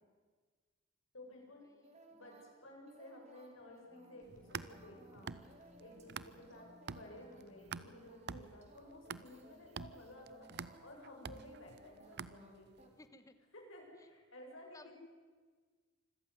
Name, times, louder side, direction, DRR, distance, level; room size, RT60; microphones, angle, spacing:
voice 1, 1.1-1.6 2.1-12.9 13.5-14.9, left 1 dB, 70° left, 1 dB, 6.2 m, -55 dB
sound 1, 1.8-12.9, right 1 dB, 30° right, 2.5 m, -62 dB
sound 2, 3.8-8.7, left 1 dB, 35° left, 4.5 m, -65 dB
sound 3, 4.2-6.6 6.9-12.8, right 5 dB, 50° right, 0.7 m, -48 dB
voice 2, 13.0-13.4 14.0-14.1 14.7-14.9, left 2 dB, 15° left, 11 dB, 1.3 m, -58 dB
26.0 x 15.0 x 9.4 m, 1.5 s
head